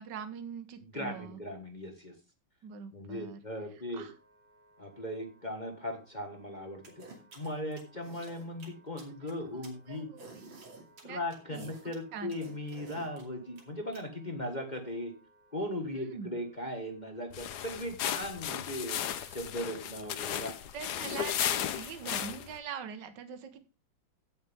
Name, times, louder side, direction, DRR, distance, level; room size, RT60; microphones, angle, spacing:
voice 1, 0.0-1.4 2.6-3.4 3.9-4.1 9.5-9.6 9.9-10.5 11.0-11.2 11.5-12.3 15.9-16.3 19.1-19.5 20.7-23.6, right 7 dB, 65° right, 9 dB, 1.8 m, -43 dB
voice 2, 0.9-2.1 2.9-4.0 4.8-7.0 7.3-10.1 11.0-15.1 15.5-19.0 19.3-20.6 22.0-22.1, left 1 dB, 25° left, 4 dB, 1.5 m, -38 dB
Wind instrument woodwind instrument, 3.9-22.6, right 2 dB, 35° right, 6.9 m, -65 dB
sound 1, 6.8-14.0, right 3 dB, 80° right, 3.4 m, -51 dB
sound 2, 17.3-22.6, left 10 dB, 65° left, 1.3 m, -35 dB
16.0 x 6.6 x 3.6 m, 0.29 s
omnidirectional pair, 2.1 m